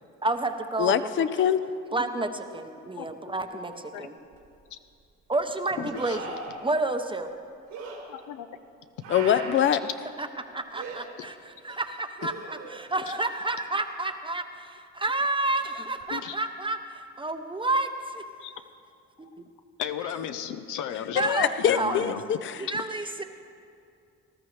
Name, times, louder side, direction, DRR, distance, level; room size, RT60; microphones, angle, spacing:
voice 1, 0.2-1.0 1.4-1.5 1.9-4.2 5.3-7.3 10.2-10.3 10.5-18.2 19.2-19.3 21.1-22.0 22.6-23.2, right 2 dB, 15° right, 7 dB, 0.7 m, -30 dB
voice 2, 0.8-1.6 9.1-9.8 21.2-22.6, left 9 dB, 40° left, 13 dB, 0.5 m, -24 dB
sound 1, 4.3-4.4 5.9-6.6 7.7-8.0 9.0-9.8 10.7-11.0 12.2-12.9 16.0-16.1, right 4 dB, 90° right, 3.0 m, -39 dB
voice 3, 5.8-6.2 8.1-8.5 11.2-11.3 16.1-16.4 18.4-18.5 19.8-21.3 21.6-22.2 22.7-22.8, left 9 dB, 80° left, 9 dB, 0.7 m, -35 dB
19.0 x 13.0 x 3.2 m, 2.4 s
cardioid pair, 90°, 30 cm